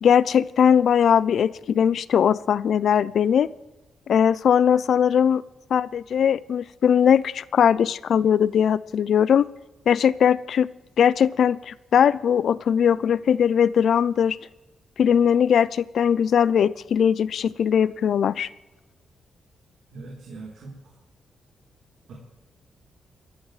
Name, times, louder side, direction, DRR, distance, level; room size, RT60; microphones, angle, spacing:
voice 1, 0.0-3.5 4.1-5.4 5.7-9.5 9.9-10.7 11.0-14.4 15.0-18.5, left 8 dB, 70° left, 18 dB, 0.5 m, -20 dB
voice 2, 19.9-20.7 22.1-22.2, right 3 dB, 75° right, -2 dB, 3.8 m, -40 dB
29.0 x 14.0 x 3.3 m, 1.1 s
cardioid pair, 125°, 0 cm